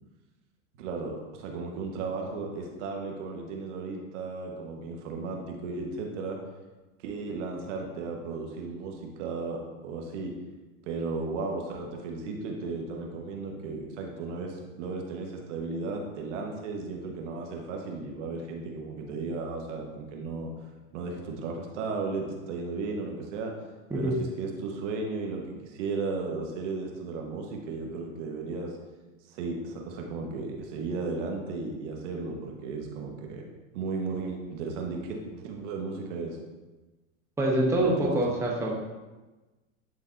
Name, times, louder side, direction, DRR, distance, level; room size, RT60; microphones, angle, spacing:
voice 1, 0.8-6.4 7.0-10.3 10.9-20.5 20.9-23.5 23.9-28.7 29.3-33.4 33.7-36.4 37.8-38.1, right 4 dB, 60° right, 1 dB, 1.4 m, -35 dB
voice 2, 37.4-38.7, right 1 dB, 5° right, -3 dB, 0.9 m, -25 dB
11.0 x 3.8 x 2.7 m, 1.2 s
hypercardioid pair, 120°, 41 cm